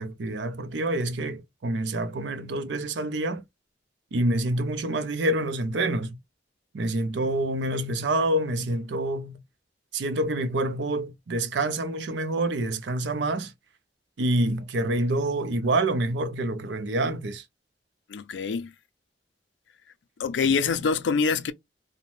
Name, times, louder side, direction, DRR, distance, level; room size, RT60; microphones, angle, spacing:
voice 1, 0.0-3.4 4.1-6.2 6.7-9.4 9.9-13.5 14.2-17.4, right 1 dB, 80° right, 0.5 m, -27 dB
voice 2, 18.1-18.7 20.2-21.5, left 5 dB, 85° left, 0.4 m, -25 dB
2.6 x 2.1 x 3.0 m
head